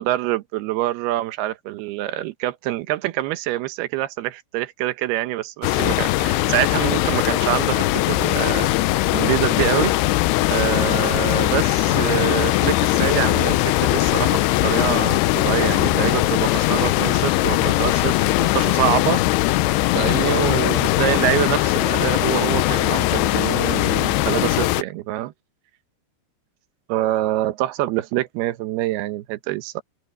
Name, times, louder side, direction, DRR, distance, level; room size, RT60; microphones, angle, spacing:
voice 1, 0.0-8.7 9.1-9.9 10.5-19.2 19.9-25.3 26.9-29.8, right 15 dB, 75° right, 2.7 m, -25 dB
sound 1, 5.6-24.8, left 17 dB, 80° left, 2.7 m, -20 dB
open air
omnidirectional pair, 5.0 m